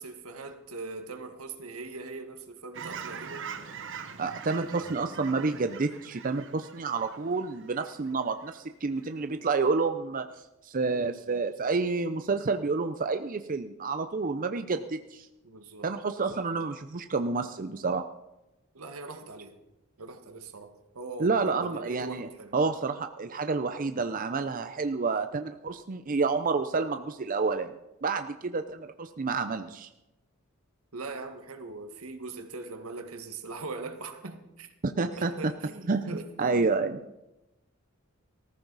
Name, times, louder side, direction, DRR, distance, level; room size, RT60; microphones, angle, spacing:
voice 1, 0.0-3.5 15.4-15.9 18.7-19.6 20.0-22.6 30.9-34.7 35.2-36.6, right 3 dB, 85° right, 1.7 m, -41 dB
Fowl / Chirp tweet, 2.7-8.6 9.0-9.2, right 6 dB, 60° right, 1.2 m, -43 dB
voice 2, 4.2-10.3 10.6-15.3 15.8-18.0 21.2-22.3 22.5-27.7 28.0-29.9 34.8-35.3 35.9-37.0, right 4 dB, 40° right, 0.6 m, -29 dB
19.0 x 14.5 x 4.0 m
head